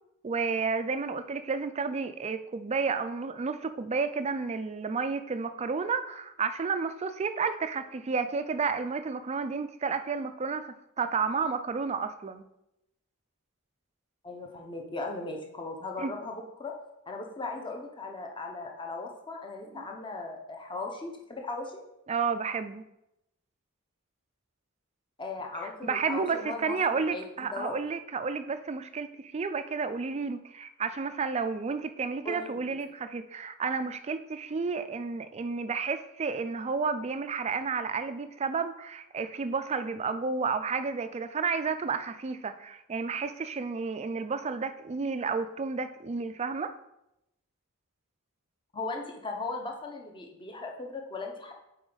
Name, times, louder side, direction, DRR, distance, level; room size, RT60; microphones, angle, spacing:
voice 1, 0.2-12.4 16.0-16.1 19.7-19.9 22.1-22.8 25.8-46.8, right 5 dB, 30° right, 10 dB, 0.4 m, -31 dB
voice 2, 14.2-16.7 17.1-21.8 25.2-27.8 32.2-32.8 48.7-51.5, left 3 dB, 20° left, 2 dB, 0.8 m, -38 dB
8.0 x 4.4 x 3.9 m, 0.86 s
head